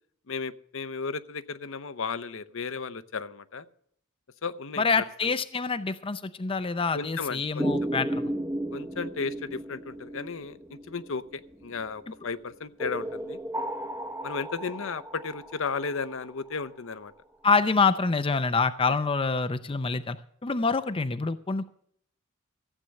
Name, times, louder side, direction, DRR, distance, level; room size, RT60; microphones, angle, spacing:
voice 1, 0.3-3.6 4.4-5.3 6.9-7.7 8.7-10.6 10.9-13.4 14.2-17.1, left 5 dB, 65° left, 12 dB, 0.8 m, -34 dB
voice 2, 4.8-8.2 17.4-20.2 20.4-21.7, left 4 dB, 25° left, 11 dB, 0.5 m, -26 dB
sound 1, 7.6-11.8 12.8-16.6, right 1 dB, 15° right, 0.8 m, -34 dB
15.0 x 8.3 x 6.5 m, 0.63 s
head